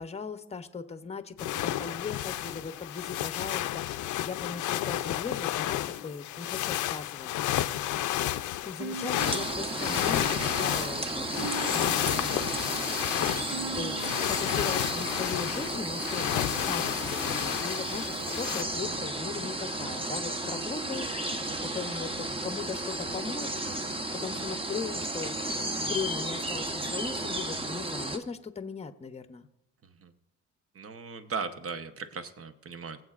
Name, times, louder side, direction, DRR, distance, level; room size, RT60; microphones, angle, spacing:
voice 1, 0.0-7.3 8.6-12.4 13.3-29.5, left 5 dB, 20° left, 9 dB, 0.8 m, -39 dB
sound 1, 1.4-18.6, left 13 dB, 80° left, 0.6 m, -31 dB
sound 2, 8.8-15.9, right 5 dB, 90° right, 1.5 m, -44 dB
sound 3, 9.2-28.2, right 1 dB, 20° right, 1.0 m, -33 dB
voice 2, 29.8-30.1 30.7-33.0, right 5 dB, 50° right, 9 dB, 1.0 m, -38 dB
21.5 x 7.9 x 2.5 m, 0.86 s
cardioid pair, 90°, 30 cm